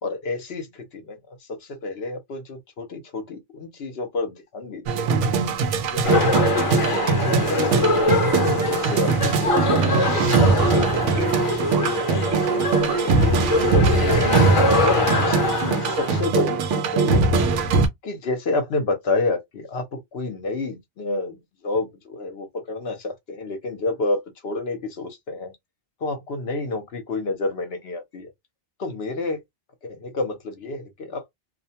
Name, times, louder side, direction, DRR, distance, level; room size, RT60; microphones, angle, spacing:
voice 1, 0.0-5.1 5.9-8.1 8.6-11.5 11.8-14.2 14.8-17.6 18.0-25.5 26.0-28.3 28.8-29.4 29.8-31.3, left 3 dB, 65° left, 0.9 m, -30 dB
sound 1, 4.9-17.9, right 4 dB, 90° right, 0.9 m, -21 dB
sound 2, 6.0-16.2, left 2 dB, 35° left, 0.7 m, -24 dB
sound 3, 9.5-14.3, right 5 dB, 50° right, 1.1 m, -29 dB
2.5 x 2.1 x 2.7 m
omnidirectional pair, 1.2 m